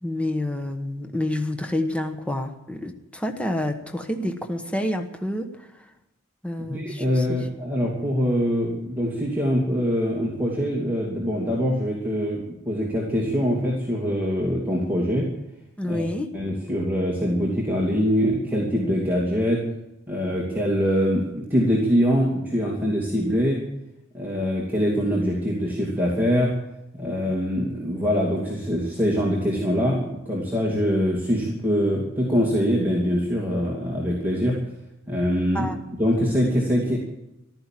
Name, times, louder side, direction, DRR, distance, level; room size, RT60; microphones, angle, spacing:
voice 1, 0.0-5.7 6.4-7.5 7.8-7.9 15.8-16.3 35.5-35.8, left 1 dB, 5° left, 5 dB, 1.1 m, -28 dB
voice 2, 6.7-15.3 15.8-16.0 16.3-19.6 20.1-23.6 24.1-26.5 26.9-34.6 35.1-35.7 36.0-37.0, equal, 10° right, -4 dB, 2.6 m, -23 dB
15.0 x 12.5 x 7.5 m, 0.89 s
head